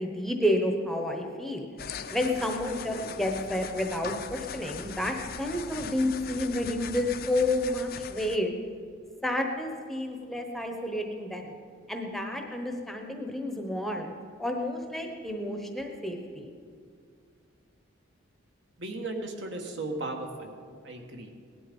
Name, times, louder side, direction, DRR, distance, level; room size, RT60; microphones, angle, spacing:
voice 1, 0.0-1.7 2.1-8.5 9.2-11.5 11.9-14.1 14.4-16.5, left 1 dB, ahead, 3 dB, 1.0 m, -30 dB
sound 1, 1.8-8.4, left 6 dB, 45° left, 0.6 m, -40 dB
voice 2, 18.8-20.5 20.8-21.3, right 2 dB, 60° right, 2 dB, 1.7 m, -36 dB
18.0 x 11.5 x 5.4 m, 2.2 s
head